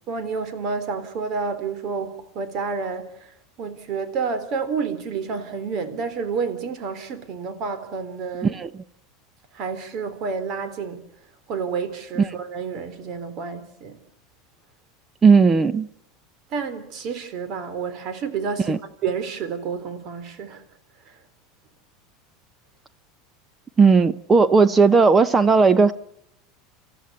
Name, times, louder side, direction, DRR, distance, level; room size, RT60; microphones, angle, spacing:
voice 1, 0.1-8.6 9.5-11.0 11.5-14.0 16.5-20.6 21.1-21.2, right 5 dB, 50° right, 3.9 m, -29 dB
voice 2, 15.2-15.9 18.7-18.8 23.8-25.9, right 4 dB, 20° right, 0.9 m, -16 dB
29.0 x 15.0 x 8.3 m
supercardioid pair, 120°, 0 cm